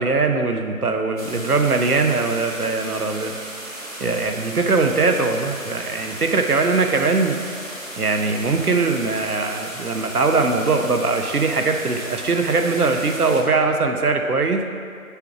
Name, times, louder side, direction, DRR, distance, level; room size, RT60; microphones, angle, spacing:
voice 1, 0.0-3.3 4.0-7.4 8.0-14.6, right 3 dB, 90° right, 4 dB, 0.9 m, -21 dB
sound 1, 1.2-13.4, right 1 dB, 60° right, 1.6 m, -35 dB
6.9 x 4.6 x 4.7 m, 2.2 s
figure-of-eight pair, 170°, 44 cm